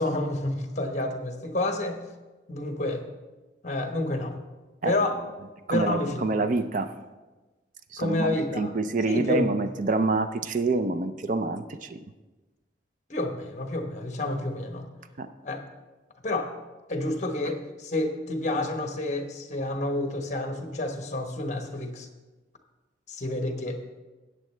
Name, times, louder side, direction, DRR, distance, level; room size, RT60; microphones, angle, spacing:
voice 1, 0.0-2.0 2.5-3.0 3.6-4.3 4.8-5.2 5.7-6.4 8.0-8.7 9.1-9.5 13.1-14.9 15.4-15.6 16.2-16.6 16.9-22.1 23.1-23.8, left 1 dB, 40° left, 4 dB, 1.1 m, -29 dB
voice 2, 5.7-6.9 7.9-12.0 15.2-15.3, right 3 dB, 45° right, 10 dB, 0.5 m, -27 dB
14.0 x 9.1 x 3.3 m, 1.2 s
head